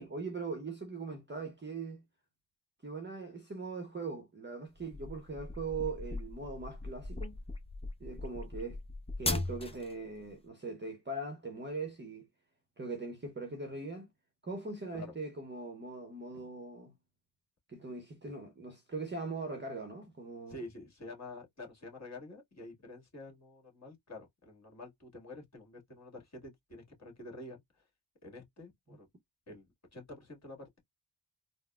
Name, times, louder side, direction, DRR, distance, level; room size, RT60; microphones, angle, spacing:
voice 1, 0.0-2.0 2.8-7.3 8.0-8.8 9.2-12.3 12.8-14.1 14.4-16.9 17.7-20.6, right 3 dB, 25° right, 0.8 m, -41 dB
sound 1, 4.8-9.9, left 2 dB, 15° left, 0.6 m, -38 dB
voice 2, 20.5-27.8 28.2-29.1 29.5-30.8, left 2 dB, 35° left, 1.8 m, -48 dB
3.9 x 2.0 x 2.3 m
cardioid pair, 90°, 46 cm